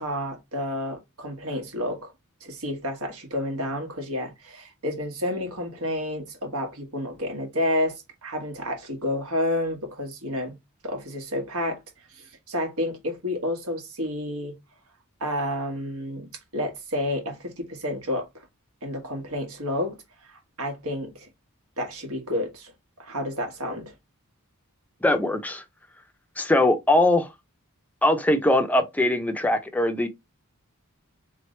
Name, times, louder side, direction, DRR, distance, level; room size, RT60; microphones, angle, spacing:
voice 1, 0.0-2.1 2.4-10.6 10.8-11.8 12.1-14.6 15.2-18.3 18.8-20.0 20.3-21.3 21.8-22.7 23.0-23.9, left 1 dB, 70° right, 1.5 m, -30 dB
voice 2, 25.0-25.6 26.4-27.3 28.0-30.1, left 1 dB, 5° left, 0.6 m, -21 dB
3.9 x 3.2 x 3.1 m
head